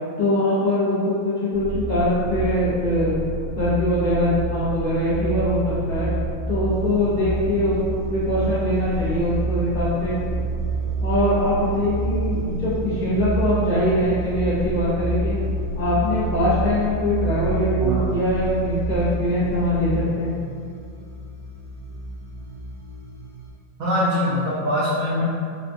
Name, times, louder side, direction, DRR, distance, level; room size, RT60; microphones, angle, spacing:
voice 1, 0.2-3.2 3.6-6.1 6.5-10.2 11.0-15.4 15.7-20.3, left 1 dB, 55° left, -11 dB, 1.5 m, -22 dB
sound 1, 1.5-20.0, right 3 dB, 90° right, 1.8 m, -28 dB
sound 2, 6.7-23.5, right 1 dB, 40° right, 1.2 m, -40 dB
voice 2, 23.8-25.2, equal, 70° right, -11 dB, 0.8 m, -22 dB
3.7 x 2.4 x 2.6 m, 2.3 s
omnidirectional pair, 2.0 m